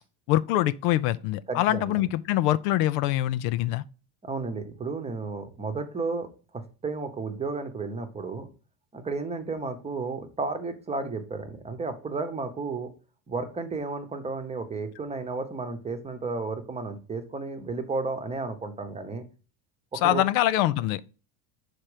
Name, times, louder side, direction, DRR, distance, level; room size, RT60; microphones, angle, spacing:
voice 1, 0.3-3.8 20.0-21.0, left 14 dB, 70° left, 0.6 m, -24 dB
voice 2, 1.5-2.1 4.2-6.3 6.5-8.5 8.9-12.9 13.3-19.2 20.0-20.2, right 3 dB, 15° right, 0.9 m, -33 dB
5.9 x 4.5 x 4.9 m
cardioid pair, 130°, 45 cm